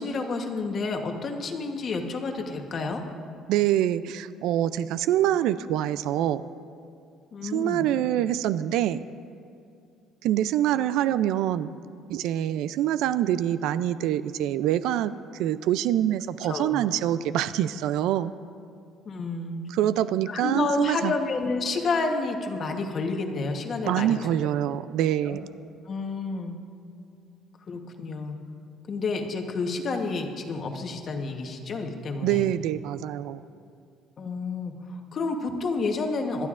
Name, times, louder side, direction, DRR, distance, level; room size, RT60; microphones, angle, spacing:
voice 1, 0.0-3.0 7.3-7.9 16.5-16.8 19.0-19.7 20.3-24.2 24.7-24.8 25.3-25.4 25.8-26.6 27.7-28.4 28.9-32.5 34.2-36.5, left 3 dB, 30° left, 4 dB, 1.0 m, -30 dB
voice 2, 3.5-6.4 7.4-9.0 10.2-11.7 12.1-18.3 19.7-21.1 23.9-25.4 32.2-33.4, right 12 dB, 70° right, 14 dB, 0.3 m, -25 dB
25.5 x 12.0 x 2.5 m, 2.4 s
cardioid pair, 175°, 0 cm